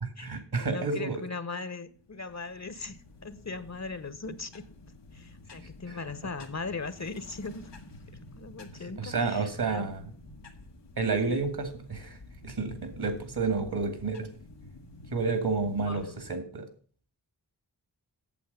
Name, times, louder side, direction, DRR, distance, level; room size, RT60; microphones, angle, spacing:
voice 1, 0.0-1.2 5.9-6.0 9.0-10.1 11.0-12.2 12.4-14.3 15.1-16.7, right 4 dB, 65° right, 2.4 m, -30 dB
voice 2, 0.7-4.6 5.1-7.7 8.3-9.9 11.2-11.4 15.8-16.1, left 4 dB, 40° left, 1.0 m, -39 dB
sound 1, 1.9-16.3, left 2 dB, 90° left, 1.4 m, -50 dB
8.5 x 7.2 x 6.9 m
cardioid pair, 40°, 41 cm